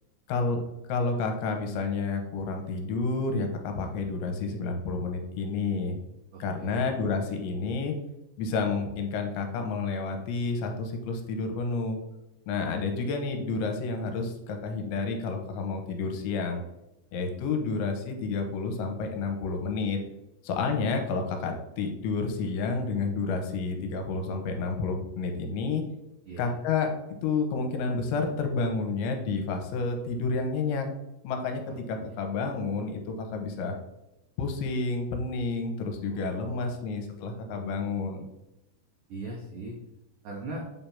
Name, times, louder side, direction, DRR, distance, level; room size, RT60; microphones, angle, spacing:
voice 1, 0.3-0.6 0.9-6.0 6.4-8.0 8.4-12.0 12.5-16.6 17.1-20.0 20.4-25.8 26.4-26.9 27.2-30.9 31.2-31.6 31.9-33.8 34.4-38.3, left 4 dB, 85° left, 4 dB, 3.1 m, -30 dB
voice 2, 6.3-6.9 26.3-26.6 31.9-32.2 36.0-36.8 37.3-38.0 39.1-39.8 40.2-40.6, right 2 dB, 80° right, -2 dB, 1.9 m, -41 dB
7.6 x 3.4 x 5.7 m, 0.91 s
omnidirectional pair, 5.4 m